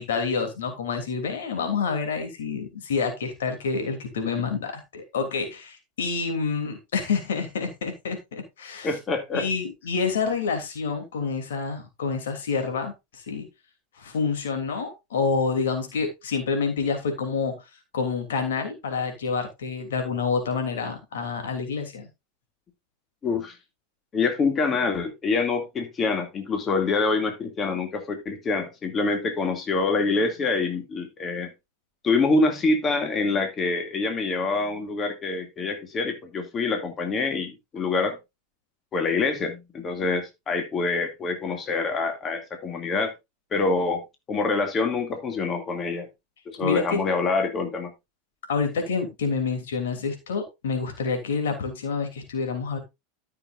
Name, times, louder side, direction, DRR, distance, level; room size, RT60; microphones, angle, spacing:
voice 1, 0.0-8.9 9.3-13.5 14.0-17.5 17.9-22.1 46.6-47.0 48.5-52.8, left 5 dB, 70° left, 5 dB, 3.0 m, -28 dB
voice 2, 8.8-9.5 23.2-23.6 24.1-31.5 32.0-38.2 38.9-43.1 43.5-44.0 44.3-46.1 46.5-47.9, left 3 dB, 30° left, 5 dB, 2.5 m, -26 dB
13.5 x 6.9 x 2.6 m, 0.22 s
figure-of-eight pair, 85°, 0 cm